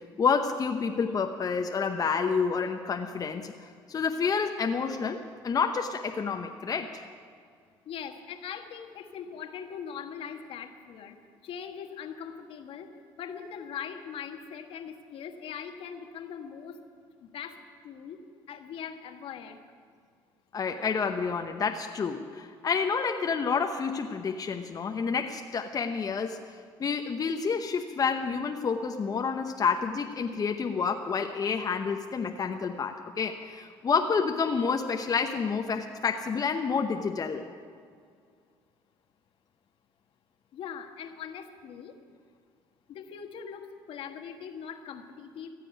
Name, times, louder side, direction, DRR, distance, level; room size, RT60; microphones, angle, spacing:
voice 1, 0.2-3.5 3.9-7.1 20.5-37.4, left 5 dB, 40° left, 5 dB, 0.9 m, -29 dB
voice 2, 7.8-11.2 11.4-16.8 17.2-17.6 17.8-18.2 18.5-19.6 40.5-42.0 42.9-45.5, left 7 dB, 65° left, 6 dB, 1.3 m, -41 dB
15.0 x 7.6 x 10.0 m, 2.2 s
supercardioid pair, 75°, 10 cm